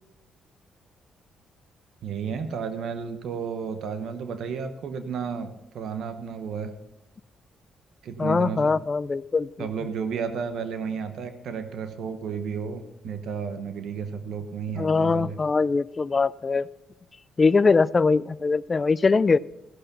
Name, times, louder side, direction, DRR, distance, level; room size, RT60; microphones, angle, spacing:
voice 1, 2.0-6.7 8.0-8.7 9.6-15.4, right 6 dB, 70° right, 9 dB, 0.9 m, -32 dB
voice 2, 8.2-9.7 14.7-16.7 17.4-19.4, left 4 dB, 30° left, 19 dB, 0.3 m, -22 dB
15.0 x 6.6 x 5.7 m, 0.94 s
cardioid pair, 90°, 0 cm